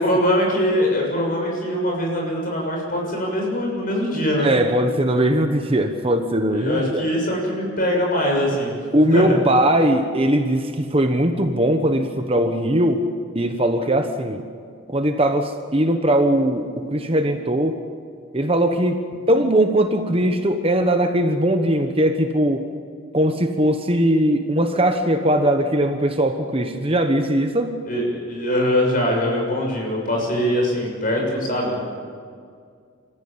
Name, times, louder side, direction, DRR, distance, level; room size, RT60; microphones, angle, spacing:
voice 1, 0.0-4.5 6.5-8.8 9.1-9.4 27.9-32.0, equal, 40° left, -1 dB, 6.8 m, -22 dB
voice 2, 4.4-7.0 8.9-13.1 13.3-14.4 14.9-17.8 18.3-22.6 23.1-27.8, right 1 dB, 30° right, 6 dB, 1.1 m, -20 dB
27.5 x 14.5 x 8.7 m, 2.1 s
head